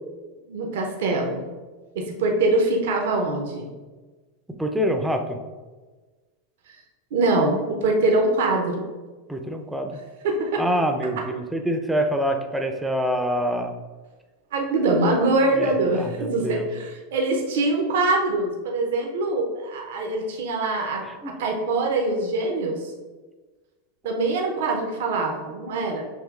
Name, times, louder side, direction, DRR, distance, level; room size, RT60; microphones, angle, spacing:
voice 1, 0.5-1.5 1.9-3.7 7.1-8.9 10.2-10.6 14.5-22.8 24.0-26.0, right 2 dB, 65° right, 1 dB, 0.6 m, -23 dB
voice 2, 4.6-5.4 9.3-9.9 10.6-13.7 15.6-16.7 21.1-21.3, equal, 5° right, 4 dB, 0.5 m, -26 dB
6.3 x 3.0 x 2.4 m, 1.3 s
figure-of-eight pair, 90°, 0 cm